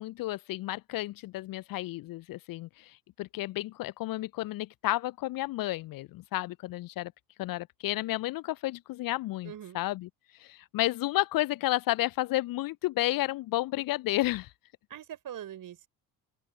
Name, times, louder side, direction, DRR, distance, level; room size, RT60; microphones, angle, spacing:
voice 1, 0.0-7.1 7.4-10.1 10.4-14.5, left 17 dB, 45° left, 0.9 m, -32 dB
voice 2, 9.4-9.8 14.9-15.9, right 10 dB, 40° right, 5.2 m, -42 dB
open air
figure-of-eight pair, 55°, 50 cm